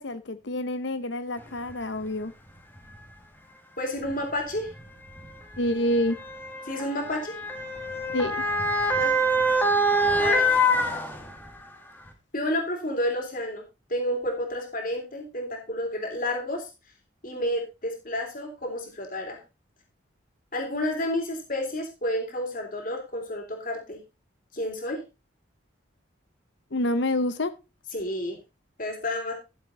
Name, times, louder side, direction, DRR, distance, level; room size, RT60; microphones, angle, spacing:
voice 1, 0.0-2.3 5.6-6.2 8.1-8.4 26.7-27.5, left 1 dB, 60° left, 13 dB, 0.8 m, -27 dB
Motor vehicle (road) / Siren, 1.7-1.8 2.8-3.0 4.0-11.6 12.1-12.2, equal, 10° left, 1.9 m, -25 dB
voice 2, 3.8-4.7 6.7-7.3 9.0-9.1 10.2-10.6 12.3-13.6 13.9-16.7 17.2-19.4 20.5-24.0 24.5-25.0 27.9-28.4 28.8-29.3, left 1 dB, 45° left, 2 dB, 3.5 m, -30 dB
13.0 x 7.5 x 4.0 m, 0.28 s
head